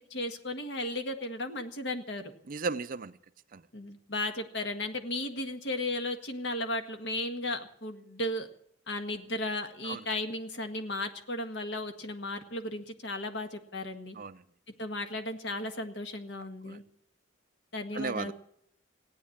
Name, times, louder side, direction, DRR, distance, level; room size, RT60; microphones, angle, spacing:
voice 1, 0.1-2.3 3.7-8.5 8.9-14.2 14.8-16.8 17.7-18.3, left 1 dB, 60° left, 6 dB, 1.7 m, -35 dB
voice 2, 2.5-3.1 3.5-3.6 9.8-10.0 14.2-14.4 16.7-16.8 17.9-18.3, right 4 dB, 45° right, 14 dB, 0.5 m, -35 dB
17.0 x 9.5 x 8.6 m, 0.70 s
head